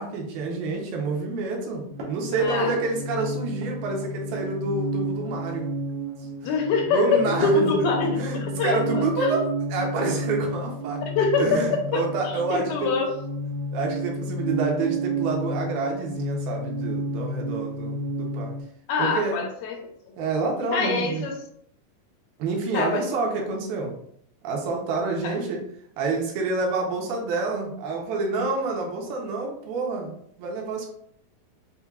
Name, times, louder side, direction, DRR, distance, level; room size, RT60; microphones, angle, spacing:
voice 1, 0.0-5.7 6.9-7.7 8.1-11.0 11.4-12.9 13.7-18.5 19.0-19.4 20.2-21.3 22.4-23.9 24.4-25.6 26.0-30.1 30.4-30.9, right 3 dB, 85° right, 0 dB, 2.6 m, -28 dB
sound 1, 1.9-18.6, right 1 dB, 70° right, 1.9 m, -31 dB
voice 2, 2.3-2.8 6.4-9.4 11.2-11.6 11.9-13.2 18.9-19.8 20.7-21.4 22.7-23.1 25.2-25.3, left 4 dB, 90° left, 2 dB, 2.6 m, -25 dB
6.9 x 2.3 x 2.2 m, 0.68 s
omnidirectional pair, 4.0 m